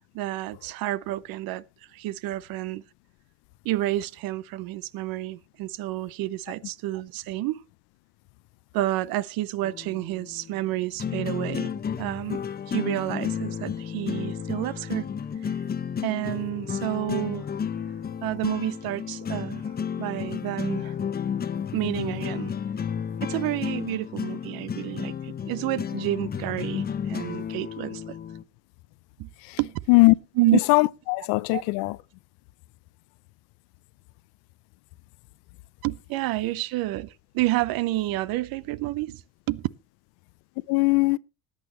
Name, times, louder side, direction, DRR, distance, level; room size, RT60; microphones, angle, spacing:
voice 1, 0.1-1.6 1.9-2.8 3.6-7.6 8.7-11.7 12.0-15.1 16.0-17.5 18.2-19.6 20.0-20.9 21.7-22.5 23.2-28.2 29.2-29.3 29.6-29.8 30.4-30.6 31.5-31.6 35.8-39.2 39.5-39.7, right 16 dB, 50° right, 0.7 m, -29 dB
sound 1, 9.6-28.4, left 7 dB, 20° left, 0.8 m, -32 dB
voice 2, 30.7-32.0 40.7-41.2, left 24 dB, 55° left, 0.6 m, -20 dB
19.5 x 8.9 x 3.0 m
hypercardioid pair, 80°, 45 cm